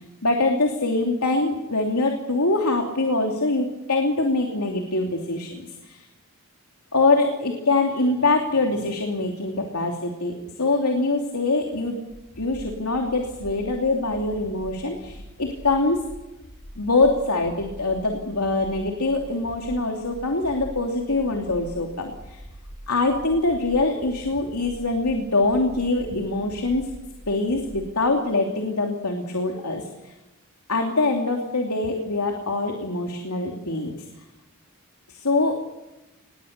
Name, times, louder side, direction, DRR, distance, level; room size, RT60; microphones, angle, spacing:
voice 1, 0.2-6.0 6.9-12.0 12.4-16.0 16.8-22.4 22.9-26.9 27.3-30.1 30.7-33.9 35.1-35.6, left 2 dB, 90° left, 2 dB, 2.9 m, -24 dB
sound 1, 12.1-27.9, equal, 45° left, 6.1 m, -44 dB
26.5 x 20.5 x 6.8 m, 1.0 s
head